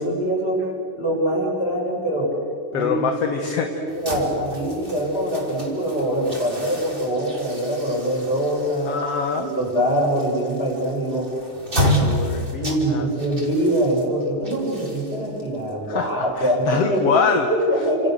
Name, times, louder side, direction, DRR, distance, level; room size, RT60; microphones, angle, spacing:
voice 1, 0.0-0.7 1.0-2.3 2.7-3.1 3.3-8.9 9.4-11.5 12.6-17.2 17.5-18.1, right 1 dB, 15° left, -3 dB, 7.3 m, -23 dB
voice 2, 2.7-3.9 8.9-9.5 11.7-13.1 15.9-17.5, left 6 dB, 55° left, 5 dB, 1.9 m, -25 dB
sound 1, 3.9-16.9, equal, 15° right, 4.4 m, -30 dB
29.5 x 28.0 x 7.0 m, 2.6 s
omnidirectional pair, 3.9 m